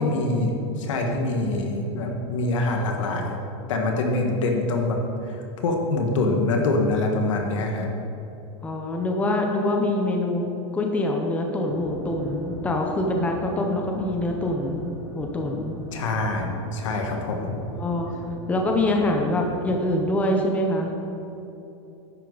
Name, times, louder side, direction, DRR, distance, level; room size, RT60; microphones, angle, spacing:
voice 1, 0.0-3.4 3.7-5.4 5.6-7.9 15.9-17.6, left 2 dB, 85° left, 2 dB, 1.6 m, -25 dB
voice 2, 8.6-10.5 10.7-14.8 15.1-15.7 17.2-17.3 17.7-18.1 18.5-20.9, left 1 dB, 10° left, 2 dB, 0.7 m, -24 dB
sound 1, 11.6-20.0, right 3 dB, 50° right, 2.0 m, -40 dB
10.5 x 8.1 x 4.0 m, 3.0 s
supercardioid pair, 155°, 16 cm